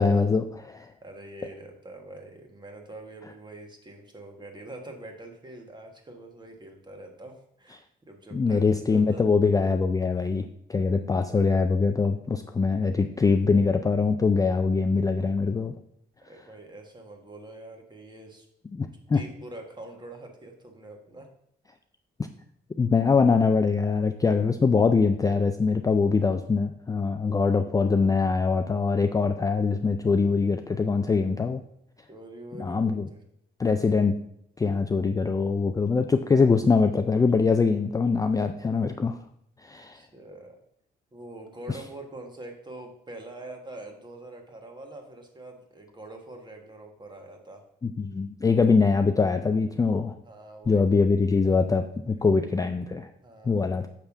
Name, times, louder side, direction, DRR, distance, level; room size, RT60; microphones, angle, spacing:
voice 1, 0.0-0.9 8.3-15.7 18.7-19.2 22.8-31.6 32.6-33.1 33.6-34.1 34.6-39.2 39.6-40.0 41.7-41.8 47.8-50.1 50.7-53.1 53.5-53.9, left 4 dB, 20° left, 7 dB, 0.4 m, -23 dB
voice 2, 1.0-9.2 16.3-18.5 19.1-21.3 32.1-33.2 39.9-40.6 41.1-47.6 50.2-50.8 52.2-52.3 53.2-53.6, right 2 dB, 20° right, 3 dB, 1.5 m, -44 dB
7.1 x 3.3 x 5.9 m, 0.72 s
cardioid pair, 90°, 20 cm